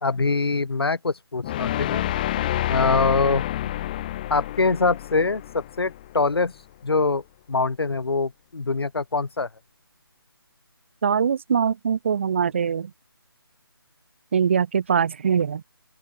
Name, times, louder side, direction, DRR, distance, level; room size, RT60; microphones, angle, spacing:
voice 1, 0.0-2.0 2.7-3.4 4.3-6.5 6.8-7.2 7.5-9.5, left 3 dB, 75° left, 1.4 m, -23 dB
sound 1, 1.4-6.5, left 13 dB, 20° left, 3.7 m, -28 dB
voice 2, 11.0-12.9 14.3-15.6, right 7 dB, 30° right, 0.8 m, -22 dB
open air
figure-of-eight pair, 165°, 13 cm